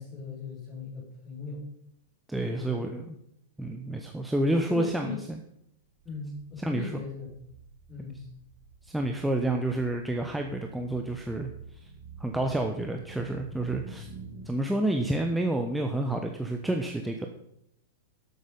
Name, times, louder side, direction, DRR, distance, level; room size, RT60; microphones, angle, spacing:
voice 1, 0.0-1.6 2.4-2.8 4.7-5.2 6.0-7.3 7.9-8.2, left 5 dB, 20° left, -8 dB, 5.5 m, -39 dB
voice 2, 2.3-3.2 3.6-5.4 6.6-7.0 8.8-11.5 11.8-11.9 12.2-14.1 14.5-17.3, right 1 dB, 5° right, 3 dB, 1.0 m, -29 dB
sound 1, 6.0-14.4, right 4 dB, 35° right, 2.3 m, -48 dB
11.5 x 8.2 x 5.4 m, 0.76 s
figure-of-eight pair, 100°, 0 cm